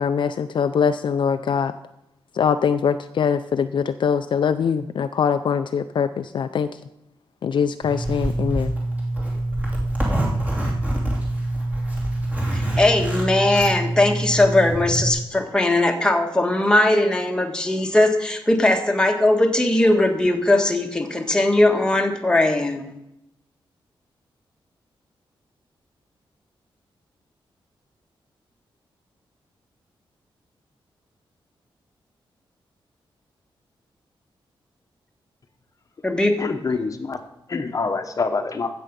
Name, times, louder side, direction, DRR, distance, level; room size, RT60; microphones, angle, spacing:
voice 1, 0.0-1.7 2.3-6.7 7.4-8.7, left 6 dB, 60° left, 10 dB, 0.5 m, -22 dB
Zipper (clothing), 7.8-15.1, right 1 dB, 15° right, 2.7 m, -25 dB
voice 2, 12.5-22.9 36.0-36.4, left 1 dB, 10° left, 3 dB, 1.4 m, -19 dB
voice 3, 36.4-37.2 37.5-38.7, left 4 dB, 40° left, 7 dB, 1.0 m, -25 dB
15.5 x 7.0 x 5.3 m, 0.85 s
wide cardioid pair, 155°, 9 cm